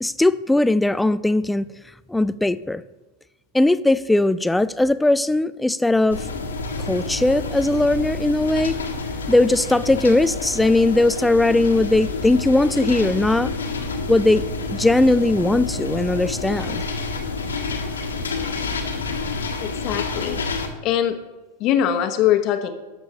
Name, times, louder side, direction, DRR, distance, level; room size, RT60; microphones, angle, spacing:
voice 1, 0.0-1.7 2.1-2.8 3.5-6.3 6.8-8.8 9.3-13.5 14.1-14.4 14.7-16.9, left 2 dB, 5° left, 0.3 m, -19 dB
sound 1, 6.1-20.7, left 3 dB, 75° left, 1.7 m, -28 dB
voice 2, 19.6-20.4 20.8-21.2 21.6-22.7, left 10 dB, 40° left, 1.1 m, -21 dB
20.0 x 6.8 x 2.9 m
figure-of-eight pair, 90°, 0 cm